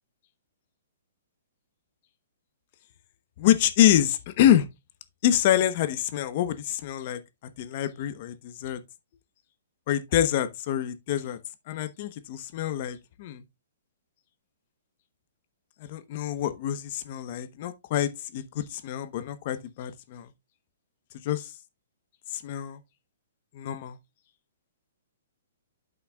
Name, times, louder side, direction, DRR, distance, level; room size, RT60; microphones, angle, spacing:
voice 1, 3.4-4.7 5.2-7.2 7.6-8.8 9.9-11.4 11.7-13.4 15.8-20.3 21.2-21.5 22.3-22.8 23.5-24.0, left 11 dB, 45° left, 1.0 m, -26 dB
12.0 x 5.7 x 2.3 m
hypercardioid pair, 150°, 0 cm